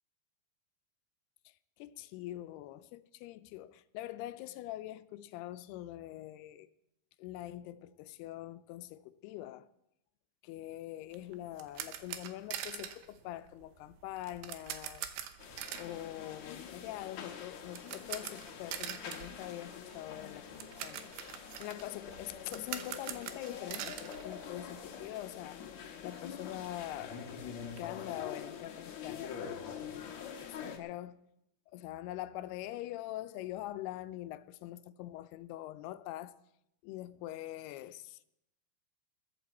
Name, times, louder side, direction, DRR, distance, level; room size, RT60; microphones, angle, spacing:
voice 1, 1.5-6.7 7.2-9.7 10.4-15.1 15.7-21.1 21.6-25.7 26.0-27.2 27.8-31.2 31.7-36.4 36.8-38.3, left 14 dB, 90° left, 2.7 m, -44 dB
sound 1, 11.1-25.1 25.3-25.5 25.9-26.0 26.2-27.8, right 10 dB, 80° right, 2.9 m, -45 dB
sound 2, 15.4-30.8, left 7 dB, 60° left, 2.1 m, -45 dB
21.0 x 11.0 x 4.2 m
omnidirectional pair, 4.5 m